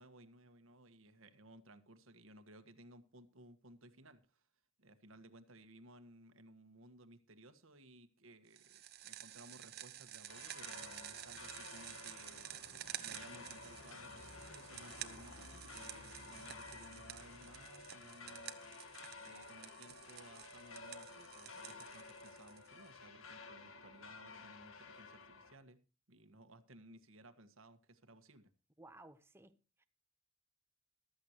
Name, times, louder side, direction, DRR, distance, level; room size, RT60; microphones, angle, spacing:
voice 1, 0.0-4.5 4.8-12.5 13.0-18.5 19.2-25.8 26.1-28.5, right 1 dB, 75° right, 1.5 m, -59 dB
sound 1, 8.5-22.9, right 12 dB, 50° right, 1.0 m, -51 dB
sound 2, 10.3-25.6, left 4 dB, 75° left, 1.4 m, -53 dB
voice 2, 28.8-29.8, right 2 dB, 10° right, 0.8 m, -58 dB
14.5 x 13.0 x 3.0 m
head